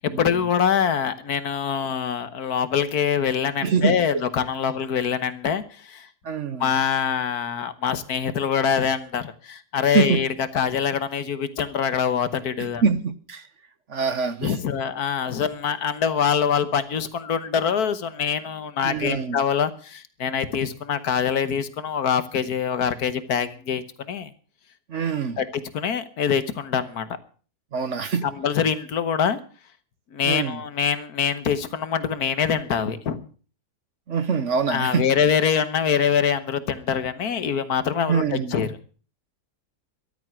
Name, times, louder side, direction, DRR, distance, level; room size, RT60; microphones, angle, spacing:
voice 1, 0.2-6.1 6.6-12.8 14.4-24.3 25.4-27.1 28.2-29.4 30.1-33.3 34.7-38.8, left 7 dB, 70° left, 12 dB, 1.6 m, -24 dB
voice 2, 3.6-4.0 6.2-6.7 9.9-10.2 12.6-13.4 13.9-14.6 18.8-19.4 24.9-25.4 27.7-28.2 30.2-30.6 34.1-35.0 38.1-38.6, right 5 dB, 50° right, 12 dB, 1.2 m, -24 dB
14.0 x 12.5 x 6.1 m, 0.40 s
omnidirectional pair, 1.7 m